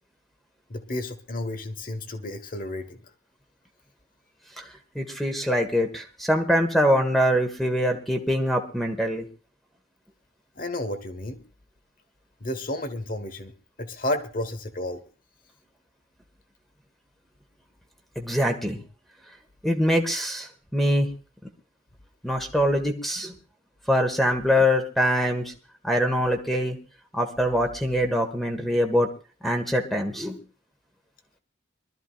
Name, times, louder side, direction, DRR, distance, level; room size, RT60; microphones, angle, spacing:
voice 1, 0.7-3.0 10.6-11.4 12.4-15.0, left 1 dB, 40° left, 10 dB, 1.4 m, -32 dB
voice 2, 4.9-9.3 18.1-18.8 19.6-21.1 22.2-23.3 23.9-25.5 25.8-26.8 27.1-29.1 29.4-30.4, equal, ahead, 5 dB, 1.4 m, -23 dB
24.5 x 13.0 x 2.4 m, 0.34 s
head